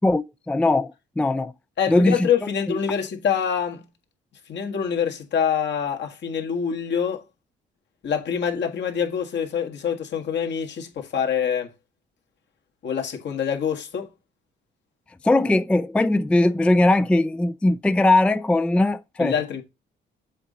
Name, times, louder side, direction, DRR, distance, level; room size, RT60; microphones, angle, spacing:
voice 1, 0.0-1.5 1.9-2.3 2.7-2.8 15.2-19.3, left 2 dB, 5° left, 0.3 m, -20 dB
voice 2, 1.8-3.8 4.5-7.2 8.0-11.7 12.8-14.1 19.2-19.6, left 7 dB, 60° left, 1.6 m, -25 dB
7.5 x 3.7 x 4.0 m
cardioid pair, 90°, 20 cm